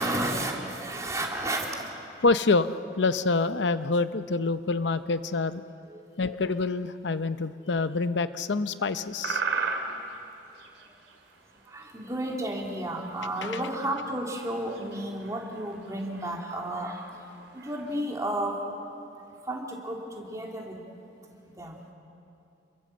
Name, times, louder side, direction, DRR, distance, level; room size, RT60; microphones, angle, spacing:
voice 1, 0.0-1.9 5.9-6.0 8.8-8.9 9.5-9.7 11.7-17.0 17.5-18.6 19.4-20.8 21.6-21.8, right 1 dB, 20° right, -1 dB, 3.1 m, -32 dB
voice 2, 2.2-5.6 6.2-9.4, left 3 dB, 70° left, 12 dB, 0.6 m, -26 dB
sound 1, 9.1-12.3 12.6-12.7 12.9-18.0, right 4 dB, 85° right, 3.0 m, -36 dB
28.5 x 22.5 x 7.6 m, 2.7 s
head